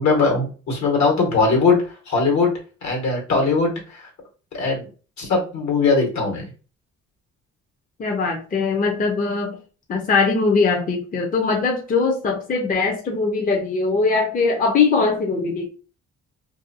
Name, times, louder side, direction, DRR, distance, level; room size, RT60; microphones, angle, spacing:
voice 1, 0.0-2.5 2.8-4.1 4.5-4.9 5.2-6.4, left 4 dB, 65° left, 0 dB, 1.3 m, -20 dB
voice 2, 8.0-9.6 9.9-15.7, left 4 dB, 30° left, 1 dB, 0.6 m, -21 dB
2.7 x 2.2 x 2.6 m, 0.36 s
cardioid pair, 90°, 30 cm